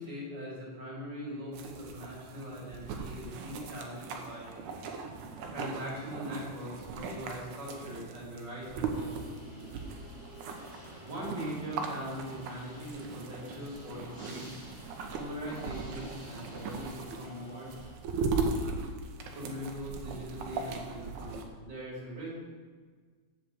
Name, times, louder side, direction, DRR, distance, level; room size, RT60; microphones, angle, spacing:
voice 1, 0.0-4.5 4.9-5.0 5.5-10.0 11.0-14.4 15.1-17.7 19.3-22.3, equal, 35° right, -5 dB, 3.6 m, -41 dB
sound 1, 1.5-21.4, right 4 dB, 80° right, 2.3 m, -39 dB
sound 2, 8.9-17.9, equal, 15° left, 2.0 m, -51 dB
7.9 x 7.5 x 7.3 m, 1.5 s
omnidirectional pair, 3.4 m